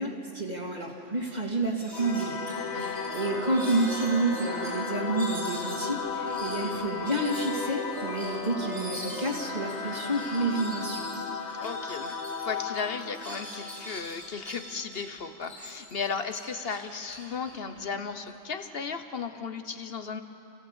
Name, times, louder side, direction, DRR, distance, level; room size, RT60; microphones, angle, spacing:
voice 1, 0.0-2.4 2.7-11.1, right 2 dB, 40° right, -1 dB, 2.5 m, -29 dB
sound 1, 0.8-0.9 1.2-1.4 1.8-4.7 5.1-12.4 12.7-15.0 15.4-18.3, equal, 80° right, 7.2 m, -43 dB
Singing / Musical instrument, 1.9-14.8, left 4 dB, 90° left, 2.5 m, -35 dB
voice 2, 2.7-3.0 11.6-12.2 12.4-20.2, left 5 dB, 60° left, 8 dB, 1.3 m, -35 dB
28.5 x 16.0 x 8.2 m, 2.9 s
omnidirectional pair, 1.1 m